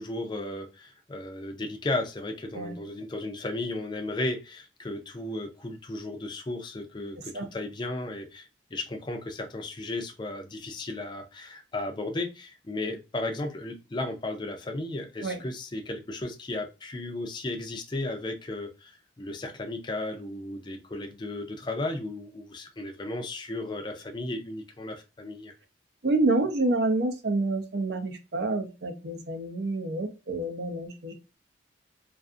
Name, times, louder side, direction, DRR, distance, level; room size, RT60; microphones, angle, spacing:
voice 1, 0.0-25.5, left 2 dB, 25° left, 0.4 m, -35 dB
voice 2, 26.0-31.1, right 2 dB, 55° right, 0.6 m, -28 dB
2.5 x 2.5 x 2.3 m
head